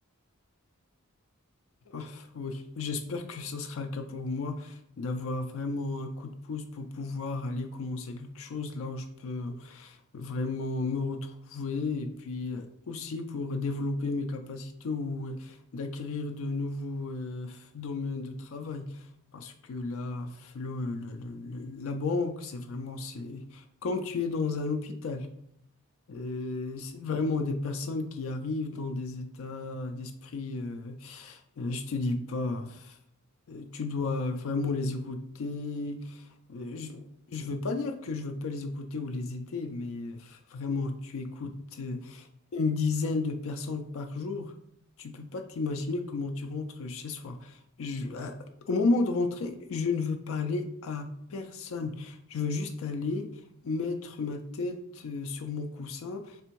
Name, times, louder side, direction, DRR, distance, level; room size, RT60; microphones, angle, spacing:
voice 1, 1.9-19.1 19.3-25.3 26.1-33.0 33.5-42.3 42.5-44.5 45.0-48.4 48.7-53.3 53.6-56.4, left 3 dB, 65° left, 5 dB, 0.4 m, -33 dB
3.4 x 3.4 x 4.5 m, 0.73 s
head